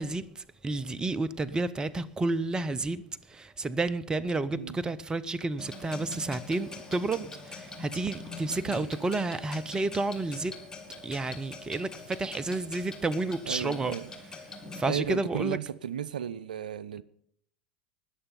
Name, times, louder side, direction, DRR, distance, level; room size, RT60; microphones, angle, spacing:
voice 1, 0.0-3.0 3.3-10.6 11.0-13.9 14.7-15.6, right 3 dB, 15° right, 0.6 m, -31 dB
Clock, 5.6-14.8, left 3 dB, 15° left, 2.4 m, -44 dB
voice 2, 13.5-14.1 14.9-17.0, right 9 dB, 80° right, 0.5 m, -34 dB
20.0 x 6.9 x 5.4 m
hypercardioid pair, 80°, 4 cm